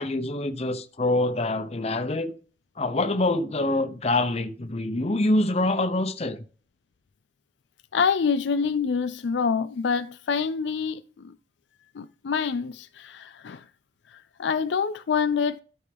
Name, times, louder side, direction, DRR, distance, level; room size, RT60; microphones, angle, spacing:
voice 1, 0.0-2.3 2.8-6.4, left 2 dB, 35° left, 0.8 m, -25 dB
voice 2, 7.9-11.3 12.0-13.6 14.4-15.6, left 6 dB, 75° left, 0.4 m, -26 dB
13.0 x 4.5 x 3.5 m
head